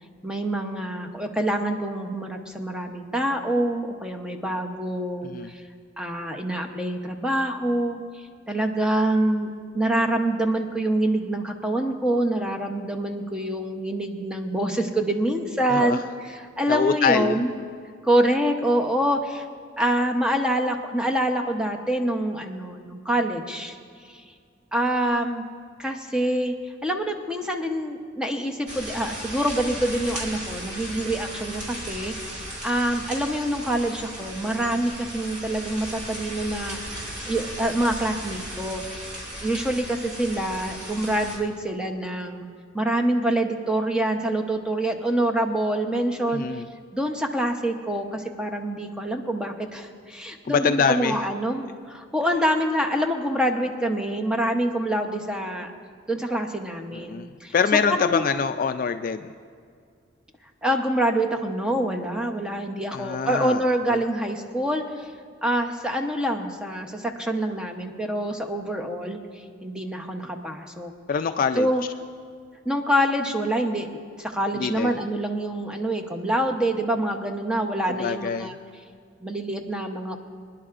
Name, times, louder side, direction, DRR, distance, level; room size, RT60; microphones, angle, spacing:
voice 1, 0.2-5.6 6.0-16.0 16.3-17.5 18.0-19.5 19.8-23.7 24.1-24.2 24.7-25.4 25.8-26.5 26.8-39.1 39.4-42.5 42.7-46.4 46.9-55.7 56.1-57.5 58.0-58.2 60.6-65.1 65.4-69.2 69.6-70.9 71.6-71.8 72.7-73.9 74.2-78.5 79.2-80.2, right 1 dB, 5° right, 4 dB, 0.8 m, -26 dB
voice 2, 15.7-16.0 16.7-17.4 46.3-46.7 50.4-51.2 56.9-59.3 62.9-63.6 63.9-64.0 71.1-71.7 74.5-75.0 77.9-78.5, left 6 dB, 45° left, 9 dB, 0.3 m, -24 dB
sound 1, 28.7-41.4, equal, 40° right, 3.3 m, -36 dB
25.0 x 10.5 x 2.5 m, 2.1 s
head